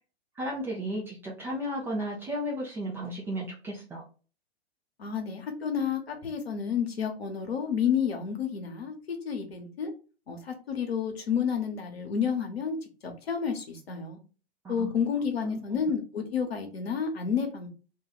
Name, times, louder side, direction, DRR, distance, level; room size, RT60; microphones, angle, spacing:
voice 1, 0.4-4.0 14.6-14.9 15.4-15.8, equal, 10° right, 0.3 m, -34 dB
voice 2, 5.0-9.9 10.3-12.8 13.0-14.2 14.7-17.7, left 7 dB, 70° left, 1.0 m, -30 dB
2.6 x 2.3 x 3.9 m
figure-of-eight pair, 110°, 31 cm